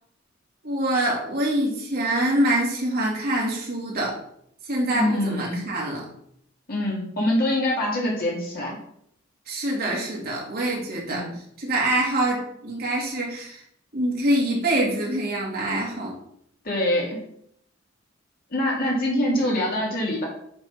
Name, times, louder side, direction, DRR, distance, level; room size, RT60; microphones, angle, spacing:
voice 1, 0.6-4.2 4.7-6.1 9.5-11.2 11.6-13.6 13.9-16.2, right 1 dB, 50° right, -3 dB, 2.0 m, -25 dB
voice 2, 4.9-5.7 6.7-8.8 11.1-11.3 16.6-17.2 18.5-20.3, left 1 dB, 50° left, -3 dB, 2.3 m, -24 dB
8.1 x 3.6 x 4.2 m, 0.70 s
head